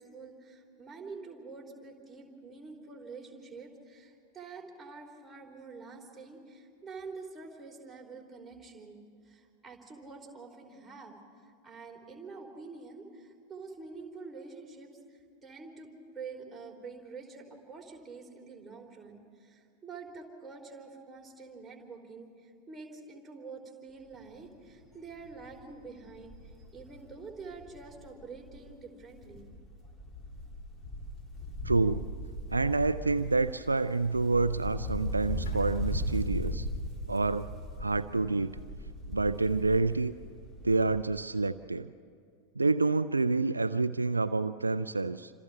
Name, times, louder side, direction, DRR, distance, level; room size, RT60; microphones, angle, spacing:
voice 1, 0.0-9.0 9.3-11.1 11.4-26.3 26.7-29.4, right 4 dB, 10° right, -1 dB, 3.6 m, -47 dB
Wind, 24.1-24.4 24.8-24.9 25.2-28.7 29.0-41.2 41.4-41.5, left 1 dB, 20° left, 2.9 m, -38 dB
voice 2, 31.6-32.1 32.5-36.7 37.1-37.5 37.8-38.6 39.1-40.1 40.6-41.9 42.6-45.3, right 3 dB, 80° right, 13 dB, 0.4 m, -28 dB
Bowed string instrument, 35.5-38.5, left 1 dB, 65° left, 3.1 m, -54 dB
28.0 x 26.5 x 3.5 m, 2.3 s
figure-of-eight pair, 90°, 0 cm